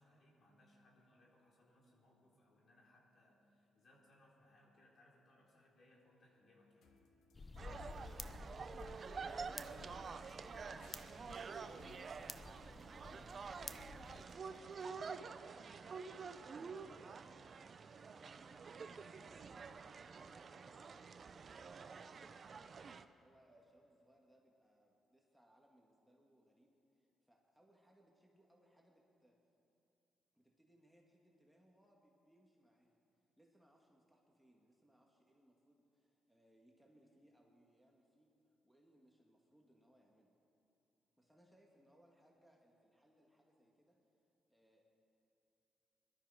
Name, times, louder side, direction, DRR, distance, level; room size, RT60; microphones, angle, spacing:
voice 1, 0.0-6.9, left 1 dB, 50° left, -2 dB, 4.0 m, -69 dB
sound 1, 6.8-14.8, left 4 dB, 75° left, 1.6 m, -66 dB
sound 2, 7.3-14.2, left 3 dB, 25° left, 0.8 m, -53 dB
sound 3, 7.6-23.0, right 5 dB, 45° right, 0.7 m, -49 dB
voice 2, 7.7-15.2 18.1-29.4 30.3-33.0 33.4-38.3 38.6-40.3 41.2-44.0 44.5-44.8, equal, ahead, -1 dB, 2.0 m, -70 dB
21.5 x 12.5 x 4.9 m, 2.8 s
cardioid pair, 85°, 0 cm